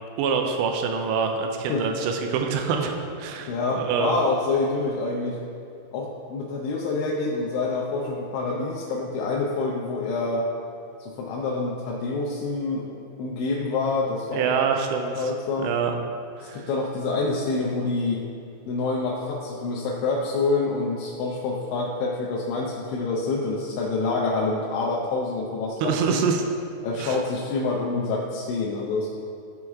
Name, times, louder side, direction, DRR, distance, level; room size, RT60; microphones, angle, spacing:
voice 1, 0.2-2.9 3.2-4.2 14.3-15.3 15.6-15.9 16.4-16.7 25.8-26.4 27.0-27.2, right 6 dB, 80° right, 3 dB, 2.8 m, -25 dB
voice 2, 1.4-1.9 3.5-5.4 5.9-10.5 11.0-14.6 15.2-15.7 16.4-18.2 18.7-26.2 26.8-29.1, left 3 dB, 85° left, -3 dB, 3.1 m, -27 dB
13.5 x 4.7 x 3.6 m, 2.5 s
omnidirectional pair, 5.2 m